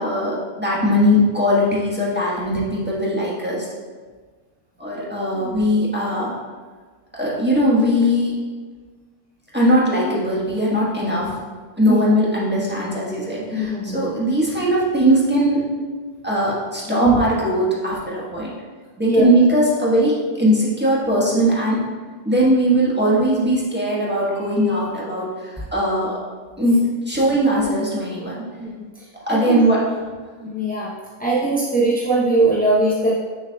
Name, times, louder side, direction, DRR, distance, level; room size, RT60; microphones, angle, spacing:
voice 1, 0.0-3.7 4.8-6.3 7.1-8.3 9.5-11.3 11.8-15.6 16.2-18.6 19.0-21.8 22.2-26.2 26.6-26.8 27.0-28.3 29.3-29.8, equal, 5° right, -7 dB, 1.3 m, -19 dB
voice 2, 13.5-14.1 16.9-17.2 19.0-19.3 28.6-28.7 29.0-29.6 30.4-30.9 31.2-33.2, right 2 dB, 10° left, -7 dB, 0.4 m, -20 dB
6.7 x 6.4 x 2.3 m, 1.4 s
omnidirectional pair, 1.6 m